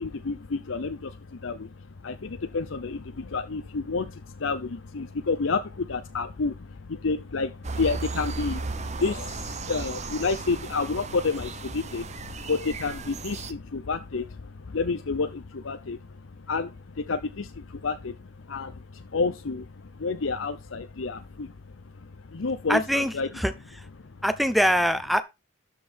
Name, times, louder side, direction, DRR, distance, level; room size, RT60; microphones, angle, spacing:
voice 1, 0.0-23.3 24.0-24.2, left 4 dB, 70° left, 0.7 m, -30 dB
sound 1, 7.6-13.5, right 3 dB, 35° right, 0.8 m, -35 dB
voice 2, 22.7-23.5 23.8-23.9 24.2-25.2, equal, ahead, 0.8 m, -23 dB
12.5 x 5.5 x 4.4 m
head